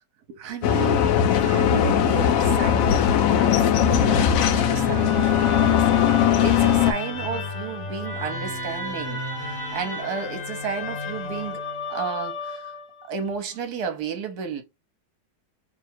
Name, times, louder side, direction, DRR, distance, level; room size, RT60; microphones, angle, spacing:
voice 1, 0.3-5.8 6.1-11.6 11.9-12.7 13.0-14.6, right 7 dB, 65° right, 1.4 m, -33 dB
sound 1, 0.6-6.9, left 9 dB, 75° left, 0.8 m, -19 dB
Musical instrument, 3.8-13.1, left 2 dB, 50° left, 1.9 m, -32 dB
3.5 x 2.4 x 4.4 m
omnidirectional pair, 2.0 m